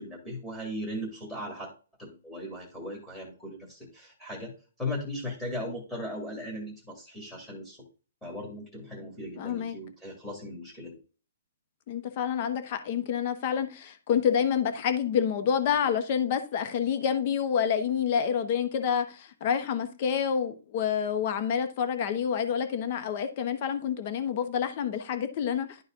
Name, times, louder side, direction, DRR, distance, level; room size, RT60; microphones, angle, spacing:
voice 1, 0.0-1.7 2.0-4.5 4.8-7.8 8.2-11.0, left 1 dB, 5° left, 2.1 m, -38 dB
voice 2, 9.4-9.8 11.9-25.8, left 8 dB, 35° left, 1.0 m, -28 dB
11.5 x 4.0 x 3.7 m
hypercardioid pair, 170°, 0 cm